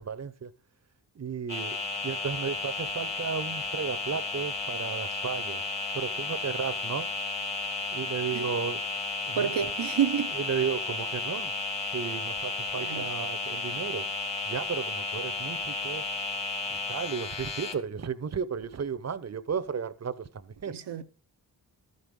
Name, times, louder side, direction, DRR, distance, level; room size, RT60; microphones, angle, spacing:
voice 1, 0.1-0.5 1.1-1.8 2.0-5.6 5.9-7.1 7.9-8.8 9.3-9.5 10.3-11.5 11.9-14.1 14.5-16.0 16.7-21.0, right 6 dB, 40° right, 0.9 m, -34 dB
sound 1, 1.5-17.7, left 3 dB, 80° left, 2.3 m, -33 dB
voice 2, 9.4-10.3 12.7-13.0 20.7-21.0, right 8 dB, 70° right, 0.8 m, -29 dB
13.0 x 5.5 x 6.4 m
cardioid pair, 45°, 43 cm